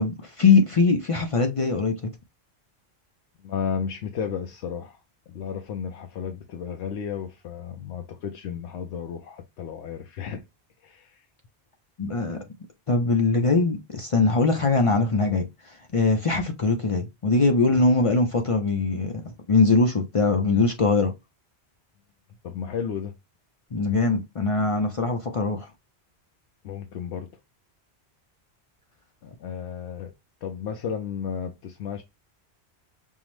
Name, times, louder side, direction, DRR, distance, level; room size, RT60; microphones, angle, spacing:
voice 1, 0.0-2.1 12.0-12.4 12.9-19.2 19.5-21.1 23.7-25.7, left 3 dB, 45° left, 0.4 m, -22 dB
voice 2, 3.4-5.0 5.3-10.4 10.8-11.3 22.4-23.1 26.6-27.3 29.2-30.1 30.4-32.0, left 7 dB, 85° left, 0.9 m, -33 dB
5.4 x 2.0 x 3.0 m
omnidirectional pair, 1.1 m